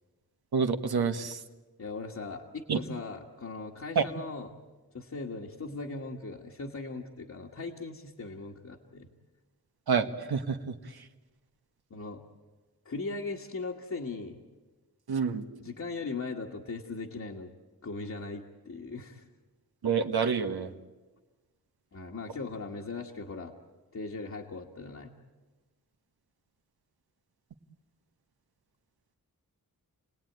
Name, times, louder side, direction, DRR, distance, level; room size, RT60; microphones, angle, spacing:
voice 1, 0.5-1.4 2.7-2.8 3.9-4.0 9.9-10.7 15.1-15.4 19.8-20.7, right 6 dB, 80° right, 7 dB, 1.5 m, -28 dB
voice 2, 1.8-4.5 4.9-9.1 11.9-12.2 12.8-14.4 15.6-17.5 17.8-19.2 21.9-23.5 23.9-25.1, left 3 dB, 45° left, -1 dB, 1.6 m, -39 dB
30.0 x 19.0 x 9.4 m, 1.3 s
wide cardioid pair, 170°, 37 cm